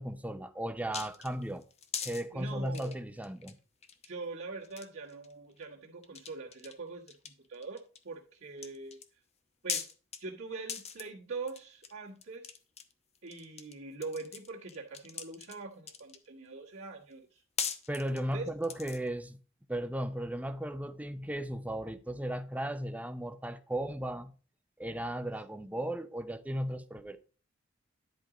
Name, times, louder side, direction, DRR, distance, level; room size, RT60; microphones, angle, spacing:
voice 1, 0.0-1.6 2.0-3.6 17.9-19.4 19.7-24.3 24.8-27.2, right 1 dB, 5° right, 0.7 m, -36 dB
sound 1, 0.9-2.2 2.7-3.5 3.8-4.1 4.6-5.3 5.6-5.7 6.0-6.7 7.1-8.0 8.6-9.1 9.7-10.2 10.7-11.0 11.5-11.9 12.2-13.7 14.0-16.3 17.1-17.2 17.6-19.1, left 7 dB, 35° left, 0.8 m, -39 dB
voice 2, 2.3-2.9 4.0-9.0 9.6-9.9 10.2-12.6 13.2-17.4 18.3-18.5, right 3 dB, 65° right, 1.8 m, -43 dB
10.5 x 4.6 x 5.0 m
head